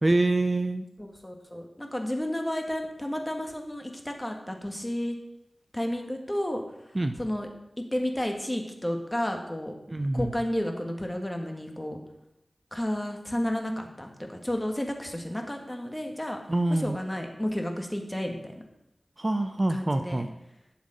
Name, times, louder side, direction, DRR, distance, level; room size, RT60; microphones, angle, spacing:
voice 1, 0.0-0.8 6.9-7.1 9.9-10.3 16.5-17.0 19.2-20.3, right 2 dB, 35° right, 9 dB, 0.5 m, -25 dB
voice 2, 1.0-5.1 5.7-6.6 7.2-7.5 7.9-9.7 10.1-12.0 12.7-16.4 16.7-18.6 19.7-20.3, left 1 dB, 15° left, 3 dB, 1.8 m, -32 dB
11.5 x 7.2 x 5.1 m, 0.84 s
wide cardioid pair, 65°, 0 cm